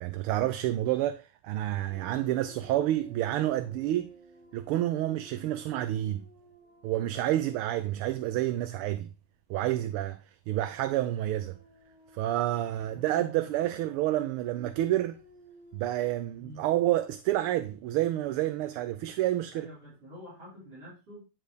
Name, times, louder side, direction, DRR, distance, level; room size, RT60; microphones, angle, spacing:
voice 1, 0.0-4.1 4.5-6.2 6.8-9.1 9.5-10.2 10.5-11.6 12.1-15.2 15.7-19.7, right 14 dB, 85° right, 1.5 m, -29 dB
sound 1, 1.9-9.3 9.6-9.8 10.5-15.8, right 2 dB, 35° right, 1.6 m, -55 dB
voice 2, 12.8-13.8 16.4-16.7 19.5-21.2, equal, 60° right, 5.5 m, -48 dB
10.5 x 3.7 x 5.0 m
omnidirectional pair, 2.4 m